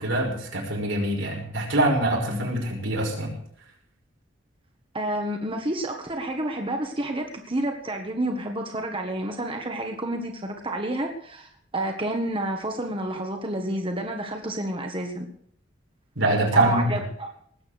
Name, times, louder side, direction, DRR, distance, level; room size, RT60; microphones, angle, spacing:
voice 1, 0.0-3.3 16.2-17.0, right 1 dB, 85° right, 0 dB, 5.8 m, -24 dB
voice 2, 4.9-15.3 16.5-17.3, right 1 dB, 30° right, 3 dB, 1.6 m, -30 dB
19.5 x 8.3 x 6.6 m, 0.65 s
head